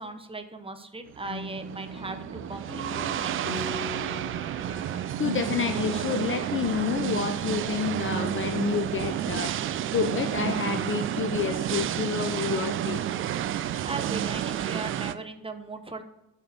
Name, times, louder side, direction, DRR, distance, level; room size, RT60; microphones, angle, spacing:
voice 1, 0.0-3.9 13.8-16.0, right 3 dB, 10° right, 6 dB, 1.1 m, -38 dB
sound 1, 1.1-15.2, right 11 dB, 25° right, 0.5 m, -30 dB
sound 2, 1.3-6.1, left 2 dB, 90° left, 0.9 m, -41 dB
voice 2, 4.3-13.0, left 6 dB, 25° left, 8 dB, 0.7 m, -29 dB
13.5 x 5.2 x 4.5 m, 0.92 s
figure-of-eight pair, 55°, 48 cm